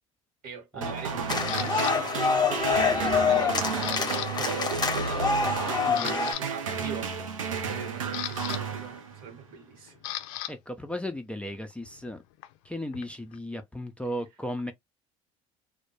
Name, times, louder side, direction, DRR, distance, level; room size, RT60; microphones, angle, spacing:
voice 1, 0.4-7.3 7.6-10.0, right 5 dB, 60° right, 1.1 m, -42 dB
sound 1, 0.8-9.4, right 6 dB, 85° right, 0.5 m, -32 dB
voice 2, 1.2-1.7 5.9-6.2 10.5-12.2 12.6-14.7, left 1 dB, 5° left, 0.4 m, -36 dB
sound 2, 1.3-6.3, left 5 dB, 25° left, 0.8 m, -26 dB
Camera, 1.5-1.9 2.5-2.9 3.2-4.3 4.6-4.8 5.3-5.4 5.8-6.4 7.6-10.5 10.8-13.4, left 14 dB, 70° left, 0.4 m, -37 dB
2.2 x 2.1 x 3.0 m
hypercardioid pair, 60°, 17 cm